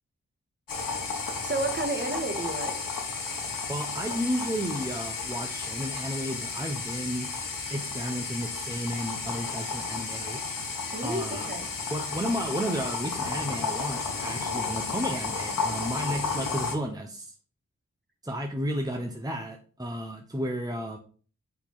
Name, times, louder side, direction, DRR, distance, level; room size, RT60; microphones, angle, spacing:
sound 1, 0.7-16.7, left 4 dB, 85° left, 1.5 m, -33 dB
voice 1, 1.4-2.8 10.9-11.7 20.8-20.9, right 2 dB, 35° right, 4 dB, 1.8 m, -31 dB
voice 2, 3.7-7.3 7.7-10.4 11.0-11.5 11.9-17.3 18.2-21.0, equal, 10° right, 3 dB, 1.0 m, -33 dB
5.8 x 4.4 x 5.5 m, 0.41 s
cardioid pair, 45°, 33 cm